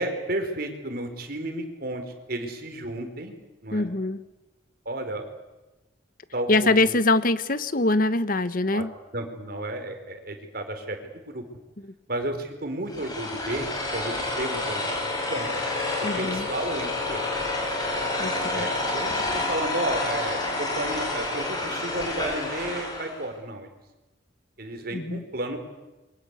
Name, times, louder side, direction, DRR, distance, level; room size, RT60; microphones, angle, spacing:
voice 1, 0.0-2.0 2.3-3.3 3.6-3.9 4.8-5.3 6.3-7.0 8.7-8.8 9.1-11.4 12.1-15.5 16.2-17.3 18.5-23.7 24.6-25.6, right 1 dB, 55° right, 5 dB, 4.7 m, -32 dB
voice 2, 3.7-4.2 6.5-8.9 16.0-16.5 18.2-18.7 24.9-25.2, left 2 dB, 50° left, 13 dB, 1.2 m, -23 dB
sound 1, 12.9-23.2, left 2 dB, 20° left, 7.3 m, -29 dB
27.5 x 24.0 x 8.4 m, 1.1 s
head